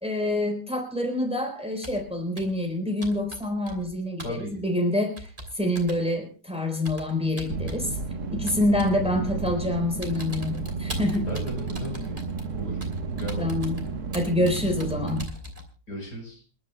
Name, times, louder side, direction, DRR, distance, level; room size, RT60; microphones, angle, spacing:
voice 1, 0.0-8.0 8.3-11.3 13.4-13.9 14.1-15.2, left 1 dB, 5° right, 3 dB, 4.0 m, -27 dB
Computer keyboard, 1.8-2.1 2.4-2.6 3.0-3.9 4.2-4.4 5.2-6.0 6.8-7.9 8.5-9.0 9.5-9.7 10.0-15.7, equal, 25° right, 3.2 m, -41 dB
voice 2, 4.2-4.5 11.3-12.2 12.5-12.8 13.1-13.6 15.9-16.4, left 1 dB, 60° left, 2 dB, 5.3 m, -35 dB
sound 1, 7.5-15.2, right 4 dB, 60° right, 1.7 m, -32 dB
29.0 x 11.5 x 2.3 m, 0.40 s
omnidirectional pair, 1.9 m